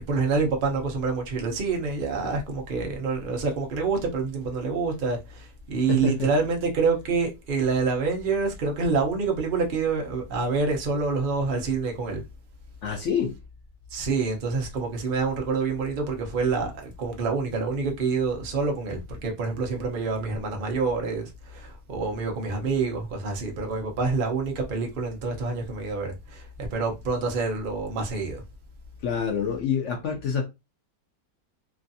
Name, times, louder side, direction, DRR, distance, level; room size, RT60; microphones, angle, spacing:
voice 1, 0.1-12.2 13.9-28.4, right 4 dB, 45° right, 0.7 m, -27 dB
voice 2, 5.9-6.3 12.8-13.3 29.0-30.5, left 7 dB, 75° left, 0.6 m, -26 dB
3.1 x 2.5 x 2.6 m
omnidirectional pair, 1.8 m